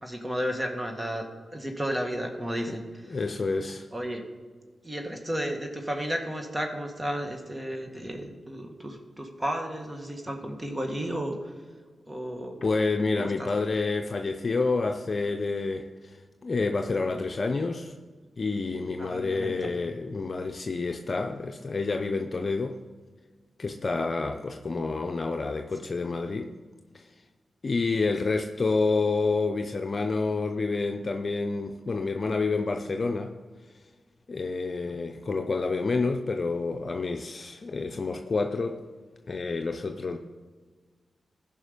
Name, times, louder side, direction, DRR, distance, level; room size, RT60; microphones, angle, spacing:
voice 1, 0.0-1.3 1.5-3.2 3.6-4.2 4.8-11.5 12.1-12.6 13.1-13.5 19.0-19.7 34.9-35.0, equal, 20° right, 1.8 m, -33 dB
voice 2, 3.1-3.9 12.6-16.1 16.4-17.9 18.4-22.8 23.6-26.5 26.9-27.0 27.6-33.3 34.3-38.8 39.3-40.2, left 3 dB, 55° left, 0.6 m, -28 dB
14.0 x 5.5 x 5.2 m
cardioid pair, 45°, 0 cm